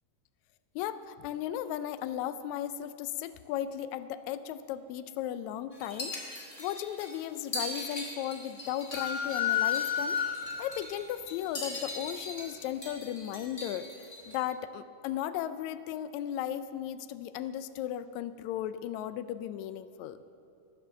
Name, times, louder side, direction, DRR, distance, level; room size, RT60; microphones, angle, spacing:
voice 1, 0.8-6.1 6.6-10.2 10.6-13.9 14.3-20.2, left 11 dB, 85° left, 12 dB, 1.6 m, -36 dB
sound 1, 5.7-14.4, left 1 dB, 25° left, 2.3 m, -41 dB
sound 2, 8.9-10.7, left 8 dB, 45° left, 3.5 m, -30 dB
16.5 x 10.5 x 6.9 m, 2.7 s
omnidirectional pair, 3.9 m